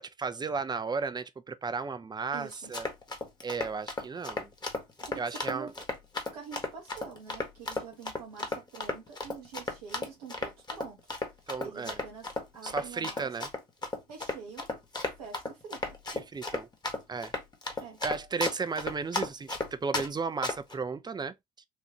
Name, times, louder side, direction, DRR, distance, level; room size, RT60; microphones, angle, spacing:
voice 1, 0.0-2.9 3.4-4.5 5.2-5.7 11.5-12.0 12.6-13.5 16.1-16.7 17.1-17.3 18.0-21.7, right 4 dB, 20° right, 0.6 m, -34 dB
voice 2, 2.3-2.7 5.0-5.7 6.3-11.2 11.6-13.5 14.1-14.7 15.2-16.0 17.8-18.0, right 6 dB, 75° right, 1.3 m, -46 dB
Run, 2.5-20.1 20.4-20.7, left 2 dB, 20° left, 1.6 m, -34 dB
4.6 x 2.7 x 2.9 m
figure-of-eight pair, 55°, 20 cm